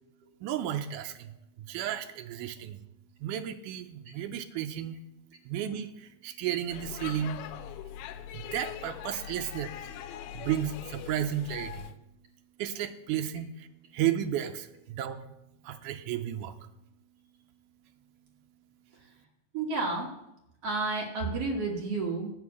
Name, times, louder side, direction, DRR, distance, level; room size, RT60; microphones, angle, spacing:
voice 1, 0.4-1.3 1.6-2.8 3.2-5.0 5.5-7.4 8.3-9.7 10.3-11.9 12.6-13.7 13.9-15.3 15.6-16.6, right 10 dB, 80° right, 8 dB, 2.0 m, -33 dB
Speech / Shout / Subway metro underground, 6.7-11.9, left 10 dB, 85° left, 2.3 m, -42 dB
voice 2, 19.5-20.1 20.6-22.3, right 3 dB, 55° right, 0 dB, 1.9 m, -31 dB
9.7 x 6.1 x 8.3 m, 0.89 s
omnidirectional pair, 4.0 m